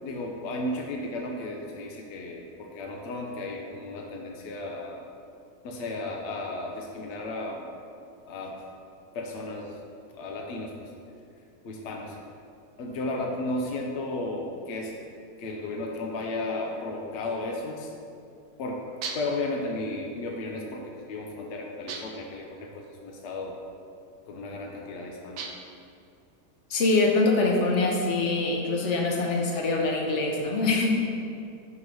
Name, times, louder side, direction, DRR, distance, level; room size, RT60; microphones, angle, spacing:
voice 1, 0.0-5.1 5.6-7.7 8.3-8.6 9.1-9.8 10.1-10.9 11.6-12.2 12.8-14.9 15.4-17.9 18.6-18.8 19.1-23.6 24.3-25.5, left 2 dB, 80° left, 0 dB, 0.6 m, -34 dB
sound 1, 19.0-19.5 21.9-22.3 25.4-25.8, right 4 dB, 70° right, 1.1 m, -37 dB
voice 2, 26.7-30.9, left 3 dB, 60° left, 0 dB, 0.8 m, -24 dB
5.9 x 3.1 x 5.2 m, 2.4 s
omnidirectional pair, 1.8 m